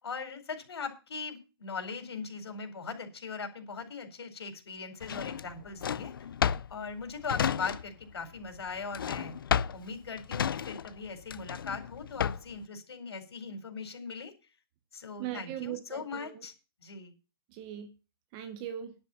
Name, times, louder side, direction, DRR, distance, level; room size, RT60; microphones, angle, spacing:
voice 1, 0.0-6.1 6.7-9.4 9.7-14.3 14.9-16.5 16.8-17.1, left 5 dB, 70° left, 4.7 m, -40 dB
Drawer open or close, 5.0-8.1 8.4-12.6, left 8 dB, 55° left, 0.5 m, -32 dB
voice 2, 15.2-16.4 17.5-17.9 18.3-18.9, right 11 dB, 15° right, 0.8 m, -39 dB
11.0 x 7.6 x 7.2 m
hypercardioid pair, 175°, 14 cm